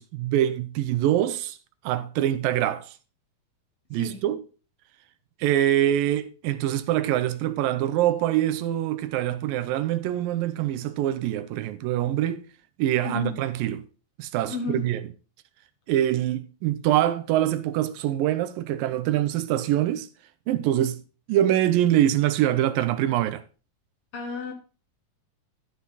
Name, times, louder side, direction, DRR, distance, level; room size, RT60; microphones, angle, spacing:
voice 1, 0.0-1.6 1.8-2.9 3.9-4.4 5.4-12.5 12.8-13.8 14.2-15.0 15.9-20.1 20.5-21.0 21.3-23.4, right 12 dB, 80° right, 2.4 m, -24 dB
voice 2, 3.9-4.3 13.0-13.4 14.5-14.9 24.1-24.5, left 4 dB, 55° left, 2.0 m, -32 dB
14.0 x 5.9 x 4.0 m
omnidirectional pair, 4.0 m